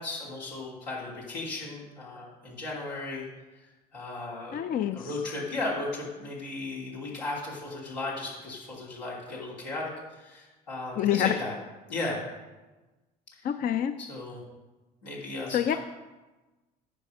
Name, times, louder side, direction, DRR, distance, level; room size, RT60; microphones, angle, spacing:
voice 1, 0.0-3.3 3.6-4.6 4.9-11.5 11.9-12.3 13.4-13.5 14.0-14.4 15.0-15.8, left 2 dB, 85° left, -5 dB, 2.9 m, -36 dB
voice 2, 4.5-5.1 11.0-11.3 13.4-13.9 15.5-15.7, left 10 dB, 40° left, 10 dB, 0.5 m, -26 dB
9.9 x 5.5 x 6.4 m, 1.2 s
hypercardioid pair, 60°, 21 cm